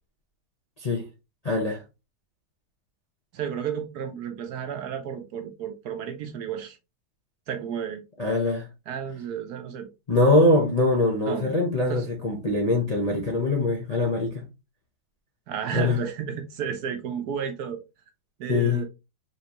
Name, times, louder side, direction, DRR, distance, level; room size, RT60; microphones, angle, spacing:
voice 1, 1.4-1.8 8.2-8.7 10.1-14.4 15.7-16.0 18.5-18.8, left 2 dB, 35° left, 0.6 m, -23 dB
voice 2, 3.3-6.8 7.5-8.0 8.9-9.9 11.3-11.5 11.9-12.0 15.5-17.8 18.4-18.9, right 7 dB, 65° right, 1.1 m, -32 dB
4.4 x 3.3 x 2.9 m
omnidirectional pair, 1.9 m